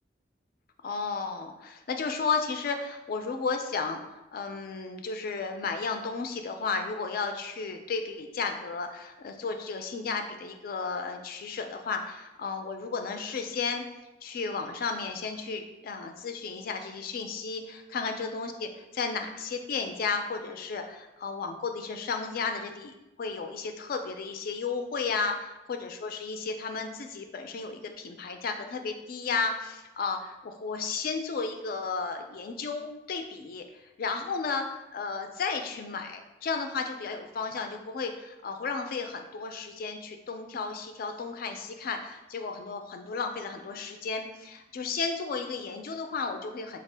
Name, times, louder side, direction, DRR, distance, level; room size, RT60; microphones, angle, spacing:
voice 1, 0.8-13.8 14.2-46.8, left 4 dB, 50° left, 6 dB, 0.3 m, -33 dB
3.6 x 2.4 x 3.3 m, 0.98 s
head